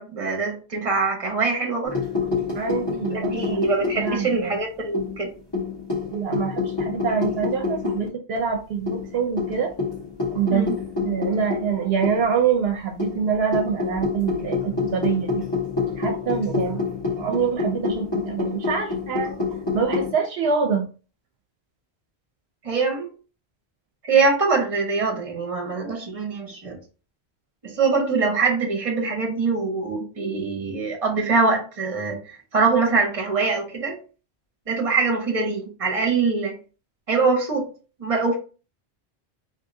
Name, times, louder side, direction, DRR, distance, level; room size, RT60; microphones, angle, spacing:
voice 1, 0.0-2.0 3.1-5.3 10.4-10.8 22.6-23.1 24.1-26.8 27.6-34.0 34.7-36.5 37.1-37.7 38.0-38.4, right 4 dB, 35° right, 0.9 m, -23 dB
sound 1, 1.8-4.5 4.9-8.1 8.4-8.5 8.9-12.4 13.0-20.1, left 4 dB, 25° left, 1.3 m, -28 dB
voice 2, 2.5-3.6 4.0-4.6 6.1-9.7 10.3-10.7 11.0-15.4 16.0-16.9 17.2-19.4 19.7-20.9, right 6 dB, 75° right, 0.8 m, -25 dB
3.6 x 2.5 x 2.6 m
omnidirectional pair, 1.1 m